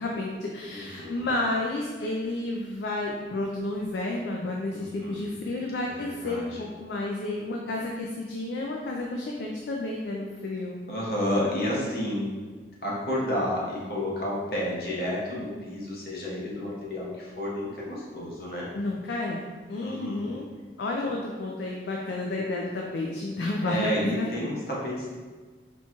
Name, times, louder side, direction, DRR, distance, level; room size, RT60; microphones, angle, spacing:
voice 1, 0.0-10.8 18.7-19.4 19.7-20.5 20.8-24.5, left 2 dB, 75° left, -1 dB, 0.4 m, -31 dB
voice 2, 0.7-1.3 4.7-5.4 5.8-6.6 10.9-12.3 12.8-18.7 19.8-20.3 23.6-25.1, left 1 dB, 60° left, -5 dB, 0.9 m, -31 dB
4.2 x 2.3 x 2.8 m, 1.5 s
head